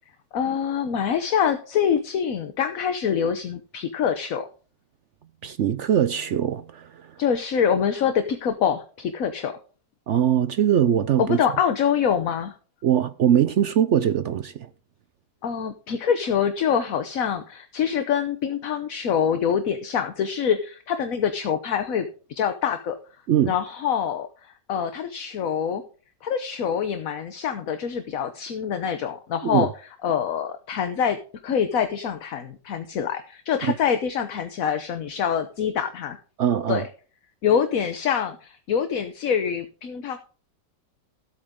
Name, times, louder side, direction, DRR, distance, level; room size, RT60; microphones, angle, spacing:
voice 1, 0.3-4.5 7.2-9.5 11.2-12.5 15.4-22.9 23.4-25.8 26.2-29.7 30.0-31.2 31.4-36.2 36.7-36.8 37.4-40.2, left 7 dB, 60° left, 1.3 m, -25 dB
voice 2, 5.4-7.1 10.1-11.4 12.8-14.7 23.3-23.5 29.4-29.7 33.6-33.7 36.4-36.8, right 9 dB, 65° right, 0.7 m, -22 dB
13.5 x 8.5 x 3.7 m
omnidirectional pair, 1.8 m